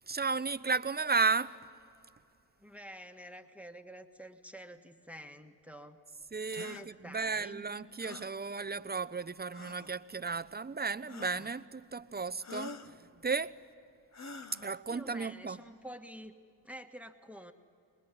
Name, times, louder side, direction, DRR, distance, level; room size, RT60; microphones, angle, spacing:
voice 1, 0.1-1.6 6.3-13.6 14.6-15.6, right 4 dB, 20° right, 0.9 m, -34 dB
voice 2, 2.6-6.0 6.6-7.6 14.9-16.3 16.6-17.5, equal, 5° right, 1.7 m, -48 dB
sound 1, 6.5-6.9 8.0-8.3 9.5-10.0 11.1-11.6 12.4-12.9 14.1-14.8, left 4 dB, 35° left, 1.4 m, -46 dB
26.5 x 20.5 x 10.0 m
supercardioid pair, 50°, 47 cm